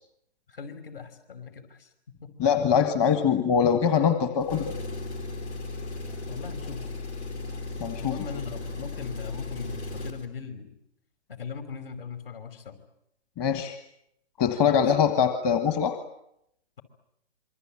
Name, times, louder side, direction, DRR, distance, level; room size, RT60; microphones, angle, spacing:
voice 1, 0.5-1.9 2.2-2.3 6.3-6.9 8.0-10.7 11.3-12.8 14.6-14.8, left 6 dB, 55° left, 10 dB, 5.3 m, -39 dB
voice 2, 2.4-4.7 7.8-8.2 13.4-13.8 14.4-16.0, left 7 dB, 25° left, 8 dB, 1.6 m, -23 dB
Engine, 4.4-10.2, left 3 dB, 85° left, 4.4 m, -36 dB
27.0 x 24.0 x 9.0 m, 0.77 s
hypercardioid pair, 150°, 33 cm